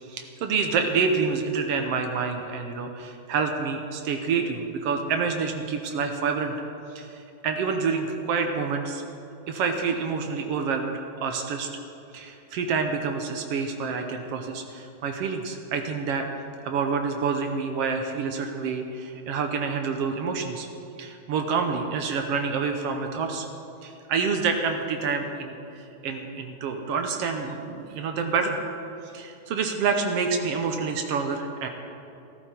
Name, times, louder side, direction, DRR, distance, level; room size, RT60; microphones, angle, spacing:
voice 1, 0.1-6.5 6.9-9.0 9.5-11.7 12.1-16.3 16.6-20.7 21.0-23.5 23.8-28.6 29.1-31.7, right 5 dB, 70° right, 4 dB, 1.5 m, -28 dB
15.5 x 13.5 x 4.4 m, 2.7 s
omnidirectional pair, 3.7 m